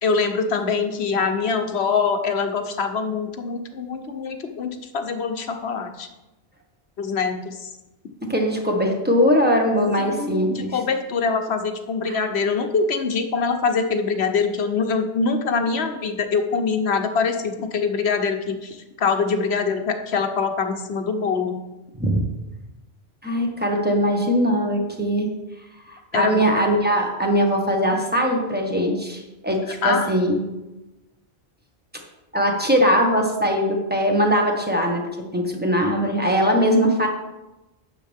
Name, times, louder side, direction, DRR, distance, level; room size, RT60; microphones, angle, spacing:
voice 1, 0.0-6.1 7.0-7.7 10.0-21.6 26.1-26.4 29.8-30.1, left 5 dB, 75° left, 6 dB, 1.2 m, -24 dB
voice 2, 8.3-10.7 12.1-12.3 22.0-22.3 23.2-25.3 25.9-30.4 32.3-35.0 35.3-37.1, equal, 10° right, 1 dB, 1.6 m, -21 dB
12.0 x 8.8 x 3.6 m, 1.0 s
omnidirectional pair, 1.1 m